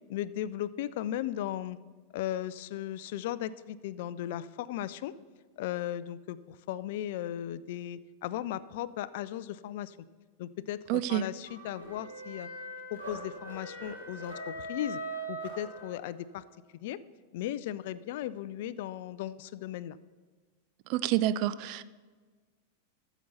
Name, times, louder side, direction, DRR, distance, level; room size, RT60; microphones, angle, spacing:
voice 1, 0.1-1.8 2.1-5.1 5.6-10.0 10.4-12.5 12.9-15.0 15.3-16.4 16.7-17.0 17.3-20.0, left 12 dB, 50° left, 0.4 m, -36 dB
voice 2, 10.9-11.2 20.9-21.8, right 13 dB, 45° right, 0.4 m, -28 dB
sound 1, 11.4-16.3, right 1 dB, 65° right, 3.7 m, -41 dB
14.0 x 7.0 x 4.1 m
figure-of-eight pair, 90°, 0 cm